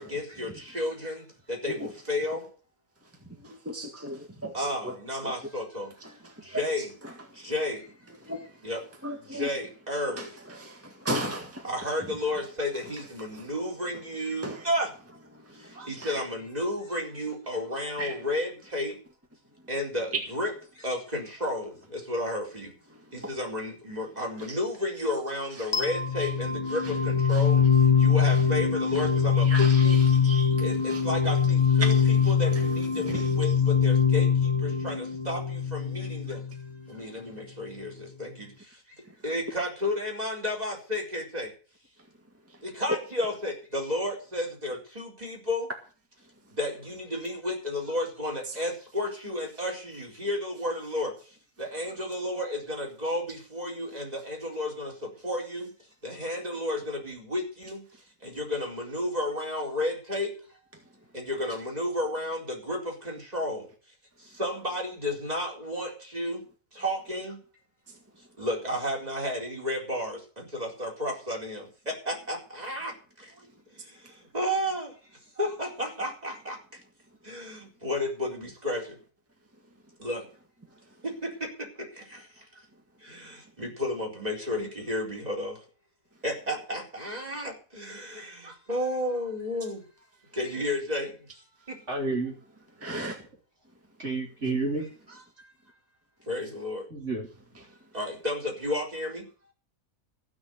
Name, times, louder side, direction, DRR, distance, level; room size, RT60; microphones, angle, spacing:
voice 1, 0.0-2.4 4.5-5.9 6.4-6.9 7.4-7.9 8.6-8.8 9.3-10.3 11.6-14.9 15.7-19.0 19.7-20.5 20.8-22.7 23.1-27.7 28.0-30.0 30.6-31.9 32.3-36.4 36.9-38.5 39.2-41.5 42.6-45.7 46.6-51.1 51.6-55.7 56.0-57.8 58.2-60.3 61.1-63.7 64.4-66.4 66.7-67.4 68.4-73.3 74.3-74.9 75.4-76.6 77.2-79.0 80.0-80.2 81.0-81.5 81.8-82.2 83.0-85.6 86.2-89.8 90.3-91.1 91.7-91.8 96.3-96.9 97.9-99.3, left 1 dB, 25° right, 4.5 m, -32 dB
voice 2, 3.0-5.4 6.0-7.5 8.1-8.7 9.0-9.5 10.1-13.5 14.3-14.7 15.3-16.2 18.0-18.3 22.9-23.3 24.4-24.6 25.0-25.1 25.5-25.8 26.2-26.3 26.7-27.0 27.3-27.5 28.3-28.4 28.9-29.1 29.3-31.0 31.8-32.6 32.9-33.6 37.0-37.4 39.0-39.2 42.4-42.6 42.9-43.0 46.2-46.6 48.4-48.6 57.9-58.0 60.7-60.8 67.9-68.0 74.0-74.1 80.7-81.0 83.6-83.7 92.8-93.2 97.5-97.9, right 1 dB, 10° right, 1.8 m, -39 dB
sound 1, 25.7-36.7, left 6 dB, 25° left, 0.6 m, -23 dB
voice 3, 91.9-92.3 94.0-94.8 96.9-97.3, right 3 dB, 55° right, 3.9 m, -29 dB
15.5 x 6.5 x 7.9 m
omnidirectional pair, 1.5 m